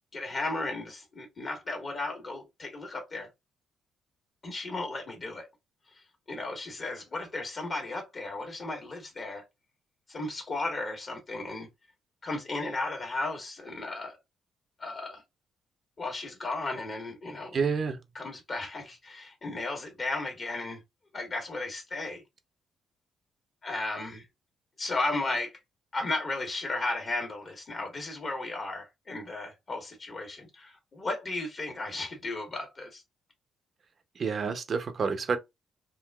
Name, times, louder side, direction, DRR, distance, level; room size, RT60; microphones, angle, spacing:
voice 1, 0.1-3.3 4.4-5.5 6.3-9.4 10.1-11.7 12.2-14.2 14.8-15.2 16.0-17.6 18.1-20.8 21.1-22.2 23.6-24.2 24.8-25.6 25.9-33.0, left 2 dB, 40° left, 1.4 m, -35 dB
voice 2, 17.5-18.0 34.2-35.4, right 5 dB, 45° right, 0.7 m, -28 dB
3.8 x 2.5 x 2.3 m
cardioid pair, 90°, 0 cm